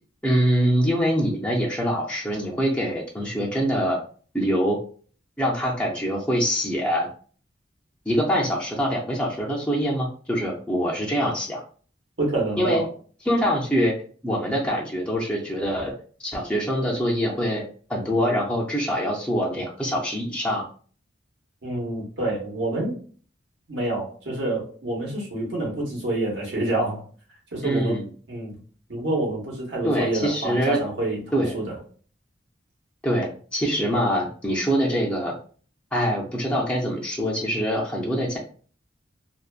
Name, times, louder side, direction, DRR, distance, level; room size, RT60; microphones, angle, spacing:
voice 1, 0.2-4.0 4.3-4.8 5.4-7.1 8.1-11.6 12.6-12.8 13.3-14.0 14.2-15.9 16.2-17.6 17.9-20.7 27.6-28.1 29.8-30.8 31.3-31.6 33.0-35.3 35.9-38.4, equal, 5° left, -3 dB, 0.4 m, -24 dB
voice 2, 12.2-12.9 21.6-23.0 23.7-27.0 27.5-28.0 28.3-28.6 28.9-31.8, right 2 dB, 65° right, -2 dB, 1.0 m, -27 dB
2.5 x 2.2 x 2.4 m, 0.42 s
head